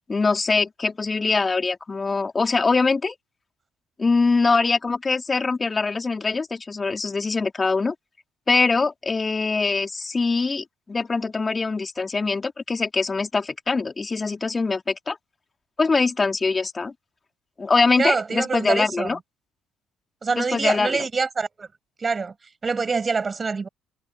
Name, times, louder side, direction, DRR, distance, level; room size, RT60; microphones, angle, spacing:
voice 1, 0.1-3.1 4.0-7.9 8.5-15.2 15.8-16.9 17.6-19.2 20.4-21.0, left 4 dB, 25° left, 3.4 m, -23 dB
voice 2, 18.0-19.2 20.2-21.7 22.0-22.3 22.6-23.7, right 4 dB, 30° right, 5.3 m, -25 dB
figure-of-eight pair, 50°, 0 cm